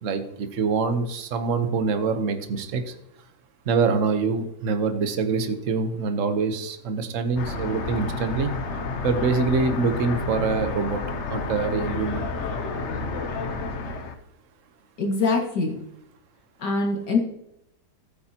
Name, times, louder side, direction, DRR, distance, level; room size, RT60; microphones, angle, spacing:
voice 1, 0.0-2.8 3.7-8.5 9.0-11.0 11.3-12.3, right 4 dB, 50° right, 8 dB, 1.2 m, -25 dB
sound 1, 7.4-14.1, left 3 dB, 50° left, 0.9 m, -30 dB
voice 2, 15.0-15.8 16.6-17.2, left 3 dB, 70° left, 1 dB, 2.5 m, -23 dB
14.5 x 8.6 x 2.9 m, 0.82 s
omnidirectional pair, 1.9 m